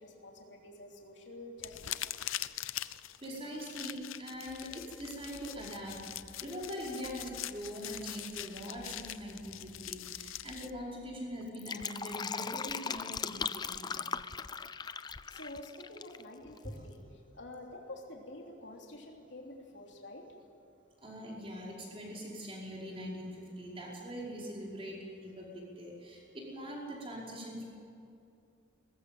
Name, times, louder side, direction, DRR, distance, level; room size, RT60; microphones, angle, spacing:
voice 1, 0.0-2.1 15.3-20.3, left 1 dB, 65° left, 0 dB, 3.2 m, -48 dB
sound 1, 1.6-10.7, left 13 dB, 85° left, 0.6 m, -43 dB
voice 2, 2.7-6.0 6.4-14.0 16.6-16.9 21.0-27.6, equal, 30° right, -3 dB, 5.2 m, -42 dB
sound 2, 4.5-7.5 7.9-10.9, equal, 10° right, 3.1 m, -59 dB
Fill (with liquid), 11.4-16.2 16.5-16.6, left 6 dB, 20° left, 0.4 m, -38 dB
20.5 x 15.0 x 9.3 m, 2.6 s
head